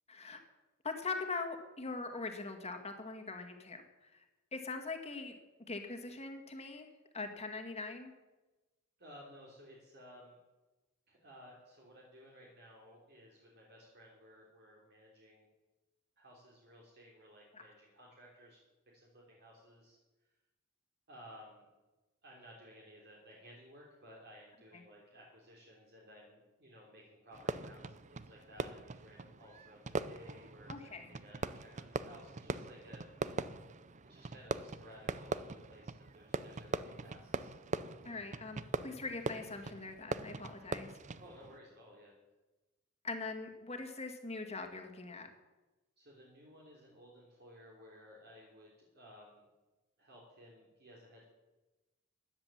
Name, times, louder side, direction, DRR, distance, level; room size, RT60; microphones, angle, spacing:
voice 1, 0.1-0.4 0.8-4.2 4.5-5.3 5.7-6.9 7.1-8.1 17.5-17.7 24.7-24.8 30.7-31.1 38.1-40.9 43.0-45.3, left 3 dB, 30° left, 5 dB, 2.0 m, -42 dB
voice 2, 9.0-10.3 11.1-15.5 16.2-18.6 18.9-20.0 21.1-21.7 22.2-29.8 30.1-30.7 31.1-33.1 34.0-37.5 41.2-42.1 46.0-49.4 50.0-51.2, equal, 50° right, -2 dB, 3.3 m, -57 dB
Fireworks, 27.3-41.6, right 3 dB, 35° right, 0.6 m, -42 dB
16.0 x 10.5 x 7.4 m, 1.1 s
head